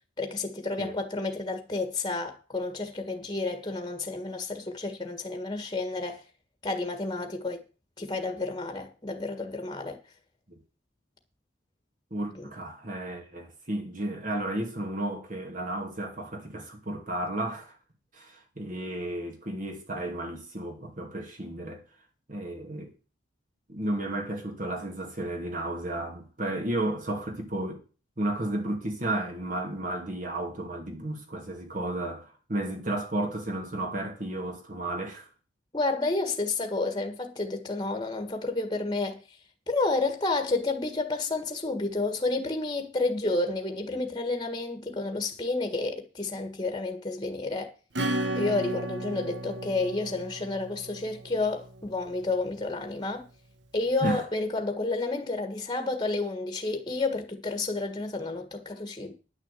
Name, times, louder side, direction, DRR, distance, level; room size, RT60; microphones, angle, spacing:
voice 1, 0.2-6.2 6.6-7.6 8.0-10.0 12.4-12.5 35.7-39.2 39.7-47.7 48.3-53.3 53.7-59.1, left 3 dB, 20° left, 1.6 m, -30 dB
voice 2, 12.1-17.8 18.1-21.8 22.3-22.9 23.7-27.8 28.2-35.3 54.0-54.2, right 1 dB, 45° right, 2.5 m, -33 dB
Acoustic guitar / Strum, 47.9-52.2, right 1 dB, 60° right, 1.1 m, -34 dB
10.5 x 6.4 x 8.3 m
head